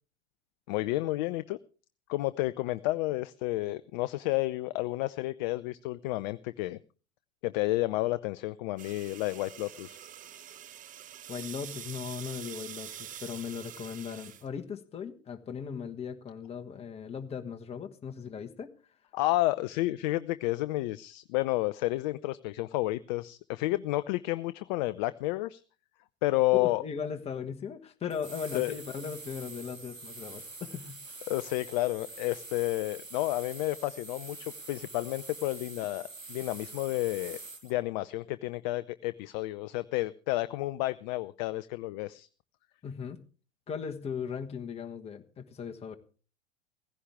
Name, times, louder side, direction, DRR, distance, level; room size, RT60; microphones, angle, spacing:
voice 1, 0.7-1.6 2.1-6.8 7.4-10.0 19.1-25.6 26.2-26.8 28.5-28.8 31.3-42.3, left 18 dB, 35° left, 14 dB, 0.6 m, -31 dB
sound 1, 8.8-14.5, right 10 dB, 20° right, 0.8 m, -45 dB
voice 2, 11.3-18.7 26.5-31.2 42.8-43.2 43.7-46.0, left 6 dB, 15° left, 4 dB, 1.4 m, -38 dB
sound 2, 28.1-37.7, right 3 dB, 85° right, 1.9 m, -45 dB
17.5 x 15.5 x 3.5 m, 0.38 s
figure-of-eight pair, 90°, 38 cm